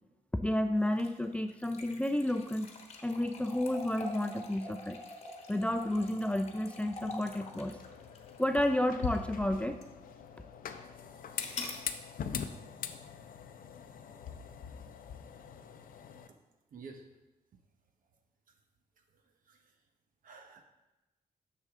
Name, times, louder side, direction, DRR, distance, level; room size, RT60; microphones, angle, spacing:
voice 1, 0.4-2.7 3.0-5.0 5.5-7.8 8.4-9.8, left 1 dB, 10° left, 7 dB, 0.3 m, -31 dB
sound 1, 0.9-9.3 9.8-9.9 11.4-11.8, left 3 dB, 45° left, 1.1 m, -45 dB
Starting Stove, 7.0-16.3, left 7 dB, 75° left, 0.6 m, -43 dB
voice 2, 16.7-17.1 19.1-19.8 20.2-20.6, right 4 dB, 70° right, 4 dB, 1.1 m, -51 dB
10.0 x 6.8 x 3.6 m, 1.0 s
wide cardioid pair, 170°, 15 cm